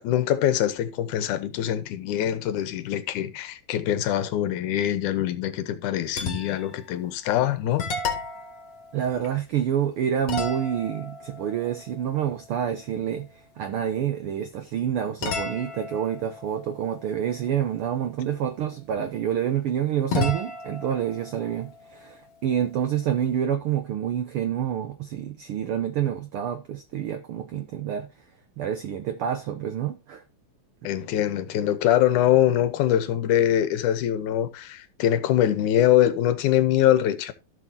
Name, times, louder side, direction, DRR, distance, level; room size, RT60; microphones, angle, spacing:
voice 1, 0.0-7.8 30.8-37.3, left 11 dB, 80° left, 2.4 m, -23 dB
sound 1, 6.1-6.8 7.3-7.4 7.8-9.7 10.3-12.9 15.2-17.9 20.1-22.7, left 3 dB, 55° left, 3.0 m, -34 dB
voice 2, 8.9-28.1 28.6-30.2, right 9 dB, 85° right, 1.2 m, -28 dB
15.5 x 6.2 x 2.8 m
omnidirectional pair, 3.5 m